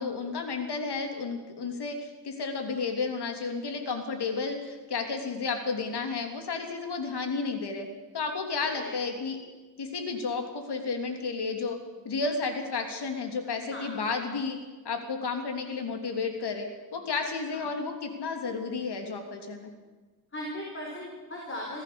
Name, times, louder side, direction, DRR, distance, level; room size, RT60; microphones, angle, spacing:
voice 1, 0.0-7.9 8.1-9.4 9.8-11.8 12.0-14.6 14.8-19.7, left 4 dB, 90° left, 4 dB, 3.1 m, -32 dB
voice 2, 20.3-21.8, left 1 dB, 30° left, -2 dB, 4.2 m, -38 dB
25.0 x 16.0 x 7.0 m, 1.3 s
wide cardioid pair, 135°, 39 cm